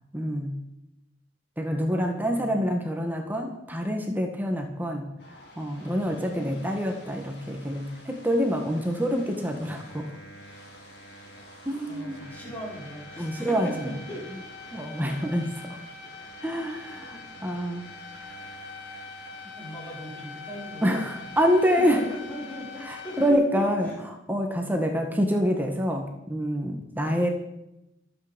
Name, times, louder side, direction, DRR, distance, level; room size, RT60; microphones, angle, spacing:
voice 1, 0.1-0.6 1.6-5.1 5.6-10.1 11.7-12.3 13.2-13.9 14.7-15.8 16.4-17.9 18.2-18.3 20.8-22.0 22.9-27.3, equal, 10° right, 3 dB, 1.7 m, -26 dB
voice 2, 2.0-2.8 5.8-6.1 11.4-14.5 18.8-19.0 19.3-21.1 21.8-24.0 27.0-27.3, equal, 10° left, -5 dB, 5.4 m, -39 dB
sound 1, 5.2-23.3, left 3 dB, 60° left, 4.7 m, -44 dB
25.0 x 8.9 x 5.3 m, 0.88 s
head